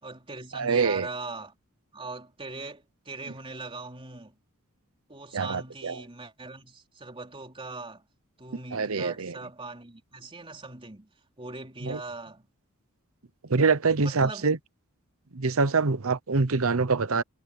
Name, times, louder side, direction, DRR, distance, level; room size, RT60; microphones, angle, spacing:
voice 1, 0.0-1.5 1.9-4.4 5.1-8.0 8.4-11.1 11.4-12.5 14.0-14.5, right 3 dB, 25° right, 3.5 m, -40 dB
voice 2, 0.5-1.1 5.3-6.0 8.7-9.4 11.8-12.0 13.5-14.6 15.3-17.2, right 4 dB, 65° right, 0.9 m, -25 dB
head